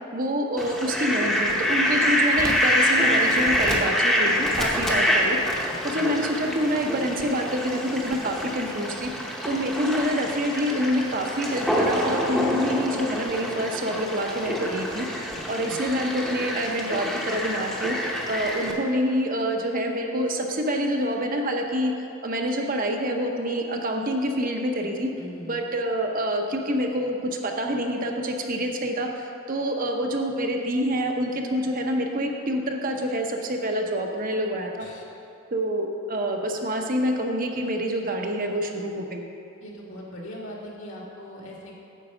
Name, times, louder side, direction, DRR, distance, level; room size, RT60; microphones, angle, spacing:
voice 1, 0.1-5.4 5.8-9.1 9.5-15.1 15.5-21.9 22.2-25.1 25.5-34.9 35.5-39.2, equal, 40° right, 2 dB, 0.7 m, -27 dB
Fowl, 0.6-18.7, equal, ahead, 0.8 m, -26 dB
voice 2, 5.7-6.1 15.6-15.8 25.2-25.6 34.8-35.0 39.6-41.8, equal, 65° left, -2 dB, 1.9 m, -40 dB
10.0 x 4.7 x 7.1 m, 2.6 s
head